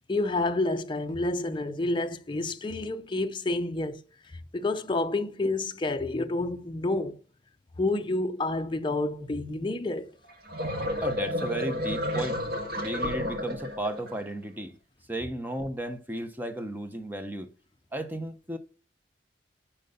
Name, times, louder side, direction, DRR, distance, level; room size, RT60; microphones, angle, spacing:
voice 1, 0.1-4.0 4.5-7.2 7.8-10.1, left 2 dB, 25° left, 0.6 m, -29 dB
sound 1, 10.3-14.2, left 1 dB, 65° right, 1.8 m, -31 dB
voice 2, 11.0-12.4 12.8-14.8 15.1-17.5 17.9-18.6, right 1 dB, 10° right, 0.9 m, -34 dB
11.0 x 4.6 x 5.3 m
head